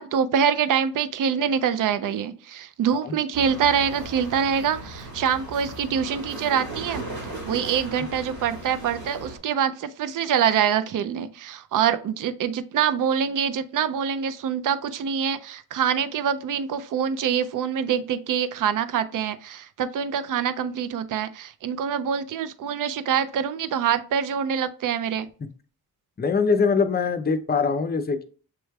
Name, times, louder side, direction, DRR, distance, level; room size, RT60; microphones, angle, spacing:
voice 1, 0.0-7.1 7.4-25.3, right 8 dB, 60° right, 12 dB, 0.5 m, -25 dB
sound 1, 3.3-9.4, right 2 dB, 85° right, 2.5 m, -37 dB
voice 2, 26.2-28.2, left 5 dB, 25° left, 9 dB, 0.5 m, -22 dB
7.4 x 3.1 x 2.3 m, 0.40 s
cardioid pair, 75°, 37 cm